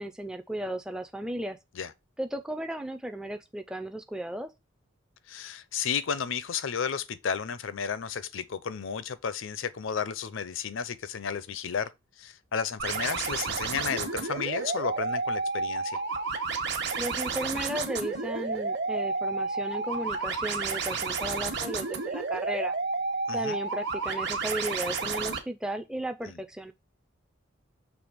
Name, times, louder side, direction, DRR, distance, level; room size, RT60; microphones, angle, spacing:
voice 1, 0.0-1.6 2.2-4.5 17.0-22.7 23.3-26.7, right 1 dB, 5° right, 0.4 m, -35 dB
voice 2, 5.3-11.9 12.2-16.0 23.3-23.6 26.3-26.4, left 6 dB, 70° left, 0.5 m, -33 dB
sound 1, 12.8-25.4, right 4 dB, 55° right, 1.2 m, -31 dB
6.2 x 3.2 x 5.0 m
head